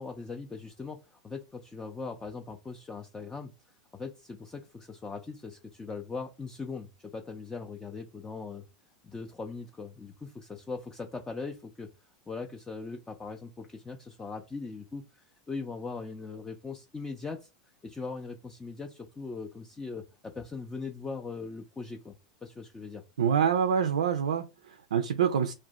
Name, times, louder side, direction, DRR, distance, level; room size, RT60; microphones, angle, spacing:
voice 1, 0.0-3.5 3.9-8.6 9.0-11.9 12.3-17.5 17.8-22.2 22.4-23.0, left 4 dB, 15° left, 0.4 m, -40 dB
voice 2, 23.2-25.5, right 8 dB, 75° right, 0.3 m, -26 dB
2.5 x 2.1 x 3.9 m
figure-of-eight pair, 90°, 4 cm